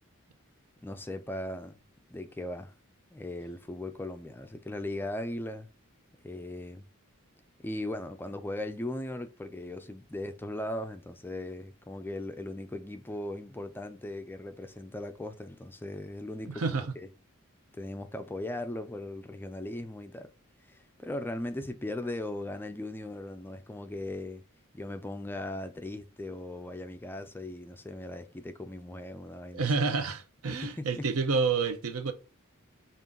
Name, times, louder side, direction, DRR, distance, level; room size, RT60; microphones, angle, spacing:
voice 1, 0.8-1.8 2.1-2.7 3.1-5.7 6.2-6.9 7.6-17.1 17.7-20.3 20.7-24.4 24.7-29.7 30.5-31.0, left 1 dB, 10° left, 0.3 m, -38 dB
voice 2, 16.5-16.9 29.5-32.1, right 4 dB, 70° right, 0.7 m, -29 dB
5.3 x 2.5 x 3.7 m
head